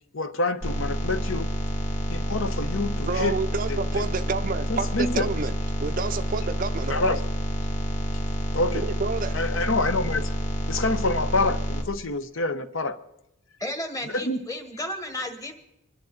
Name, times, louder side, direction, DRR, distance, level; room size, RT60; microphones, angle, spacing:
voice 1, 0.1-1.5 2.1-3.4 3.7-4.0 4.7-5.3 6.9-7.2 8.5-8.8 9.3-10.3 10.7-13.0 14.1-14.4, left 2 dB, 60° left, 11 dB, 0.9 m, -27 dB
sound 1, 0.6-11.8, equal, 35° left, 2.1 m, -28 dB
voice 2, 3.1-7.2 8.7-9.3, right 4 dB, 40° right, 10 dB, 0.5 m, -29 dB
voice 3, 13.6-15.6, left 1 dB, 15° left, 5 dB, 1.5 m, -33 dB
25.5 x 11.5 x 3.9 m, 0.88 s
head